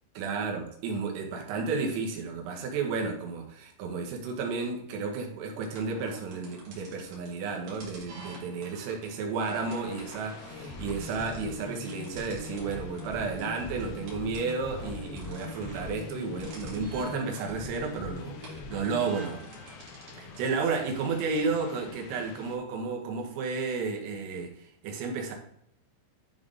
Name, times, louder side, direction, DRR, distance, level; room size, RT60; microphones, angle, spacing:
voice 1, 0.2-19.4 20.2-25.3, right 4 dB, 85° right, 1 dB, 3.9 m, -32 dB
sound 1, 5.6-20.5, right 2 dB, 55° right, 3.2 m, -49 dB
sound 2, 9.4-22.6, left 7 dB, 85° left, 3.1 m, -50 dB
sound 3, 10.5-19.0, left 3 dB, 55° left, 1.8 m, -42 dB
11.5 x 3.8 x 3.8 m, 0.71 s
omnidirectional pair, 5.7 m